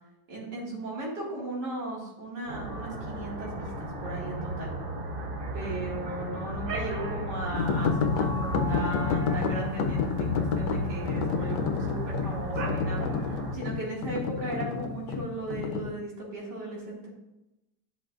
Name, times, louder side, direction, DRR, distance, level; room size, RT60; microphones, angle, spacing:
voice 1, 0.3-4.7 5.5-17.1, right 1 dB, 80° right, -4 dB, 2.6 m, -36 dB
sound 1, 2.5-13.6, right 1 dB, 45° right, 0.8 m, -34 dB
sound 2, 7.5-15.9, left 6 dB, 85° left, 1.2 m, -30 dB
10.5 x 6.4 x 2.4 m, 0.96 s
omnidirectional pair, 1.8 m